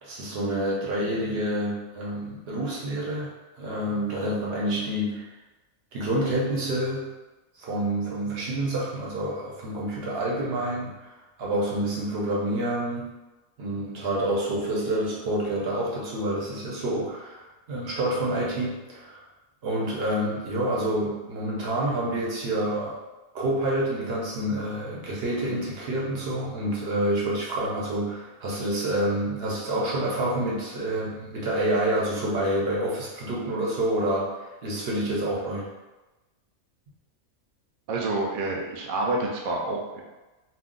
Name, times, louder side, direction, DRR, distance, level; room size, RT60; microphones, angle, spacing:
voice 1, 0.0-3.3 3.6-5.3 5.9-7.1 7.6-10.9 11.4-13.1 13.6-19.2 19.6-23.0 23.3-34.3 34.6-35.7, right 1 dB, 50° right, -4 dB, 0.9 m, -28 dB
voice 2, 37.9-40.0, right 2 dB, 85° right, -1 dB, 0.4 m, -28 dB
2.4 x 2.3 x 3.7 m, 1.1 s
omnidirectional pair, 1.5 m